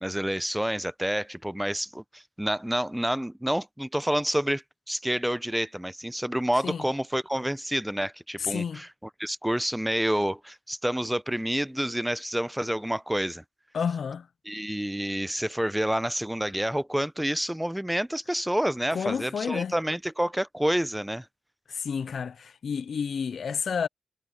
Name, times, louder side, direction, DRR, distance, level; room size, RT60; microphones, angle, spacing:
voice 1, 0.0-8.9 9.2-13.4 14.5-21.3, equal, 5° right, 0.6 m, -28 dB
voice 2, 8.4-8.8 13.7-14.3 18.9-19.7 21.7-23.9, left 6 dB, 80° left, 0.3 m, -30 dB
cardioid pair, 60°, 0 cm